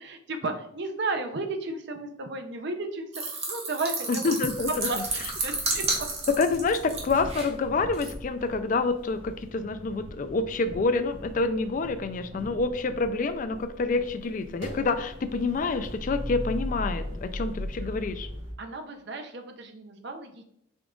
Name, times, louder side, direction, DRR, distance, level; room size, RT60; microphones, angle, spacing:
voice 1, 0.0-3.1 3.5-4.3 4.7-6.1 18.6-20.4, right 3 dB, 60° right, 6 dB, 0.6 m, -33 dB
sound 1, 3.1-7.5 7.9-8.1, right 3 dB, 35° right, 1.0 m, -31 dB
voice 2, 4.1-4.9 6.4-18.3, left 3 dB, 40° left, 9 dB, 0.3 m, -27 dB
sound 2, 4.4-18.5, equal, 80° right, 1.7 m, -40 dB
5.1 x 2.4 x 3.7 m, 0.72 s
head